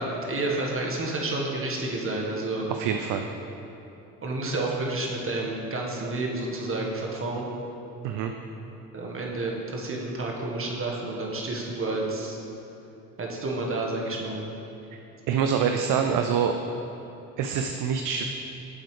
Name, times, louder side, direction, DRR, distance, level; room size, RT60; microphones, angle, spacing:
voice 1, 0.0-2.7 4.2-7.5 8.9-12.4 13.2-14.4, right 2 dB, 25° right, -2 dB, 1.6 m, -30 dB
voice 2, 2.7-3.3 8.0-8.3 15.3-16.5 17.4-18.2, right 7 dB, 45° right, 5 dB, 0.5 m, -25 dB
9.2 x 7.5 x 3.3 m, 3.0 s
hypercardioid pair, 60°, 47 cm